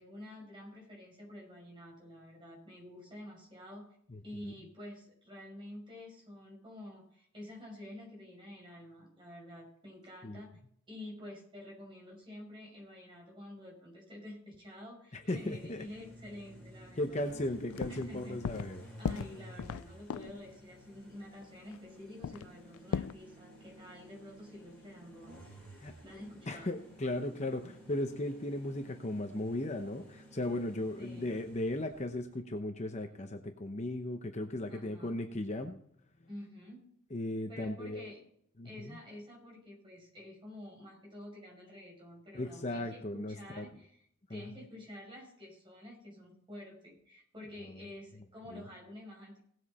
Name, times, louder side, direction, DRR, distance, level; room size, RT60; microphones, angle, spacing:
voice 1, 0.0-4.0 4.2-10.5 10.9-17.2 17.9-18.4 19.0-25.4 26.0-26.7 31.0-31.3 34.7-35.2 36.3-36.9 37.5-38.2 38.6-43.9 44.3-49.4, left 1 dB, 25° right, -1 dB, 5.8 m, -49 dB
voice 2, 4.1-4.5 10.2-10.4 15.1-15.8 16.9-18.9 25.8-25.9 26.5-35.8 37.1-38.1 38.6-39.0 42.3-43.7 44.3-44.4 47.6-47.9 48.5-48.7, left 1 dB, 30° left, 5 dB, 0.8 m, -37 dB
sound 1, 15.5-32.3, right 1 dB, 5° left, 5.5 m, -55 dB
sound 2, 17.3-17.4 17.7-18.1 18.4-18.7 19.0-20.4 21.4-21.5 21.7-21.8 22.2-23.1, left 6 dB, 80° left, 0.4 m, -37 dB
18.0 x 8.0 x 4.2 m, 0.67 s
head